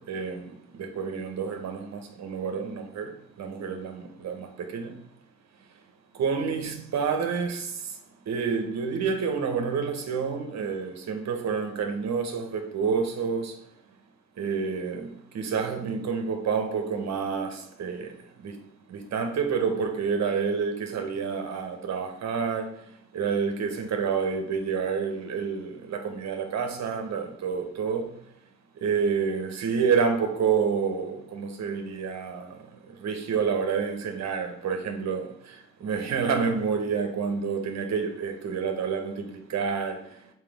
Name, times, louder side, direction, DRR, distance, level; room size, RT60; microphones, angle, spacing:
voice 1, 0.0-5.0 6.1-8.0 8.3-13.6 14.4-18.6 18.9-22.8 23.1-28.2 28.8-40.2, right 6 dB, 60° right, 1.1 m, -29 dB
5.9 x 4.7 x 3.5 m
cardioid pair, 90°, 30 cm